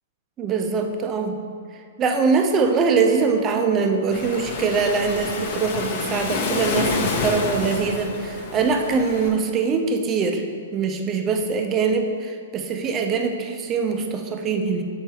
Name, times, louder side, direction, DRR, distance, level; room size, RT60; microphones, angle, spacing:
voice 1, 0.4-1.4 2.0-10.4 10.7-14.8, right 5 dB, 25° right, 4 dB, 0.6 m, -23 dB
Waves surf, 4.1-9.3, left 4 dB, 55° left, 0.9 m, -28 dB
6.7 x 4.4 x 4.5 m, 2.2 s
hypercardioid pair, 125°, 0 cm